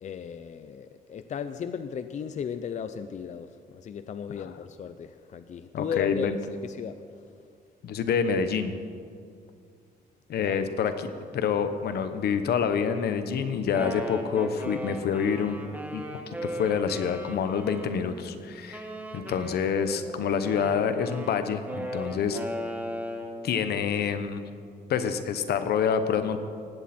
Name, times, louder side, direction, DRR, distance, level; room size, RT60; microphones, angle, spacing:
voice 1, 0.0-7.0 10.4-10.6 19.1-19.3, left 7 dB, 50° left, 10 dB, 0.6 m, -36 dB
voice 2, 5.7-6.4 7.8-8.8 10.3-15.6 15.9-16.0 16.4-18.9 19.1-22.4 23.4-24.4 24.9-26.4, left 7 dB, 85° left, 9 dB, 1.1 m, -27 dB
Wind instrument woodwind instrument, 13.5-18.2 18.7-23.4, equal, 10° right, 1.5 m, -37 dB
19.0 x 16.0 x 4.4 m, 2.2 s
cardioid pair, 140°, 16 cm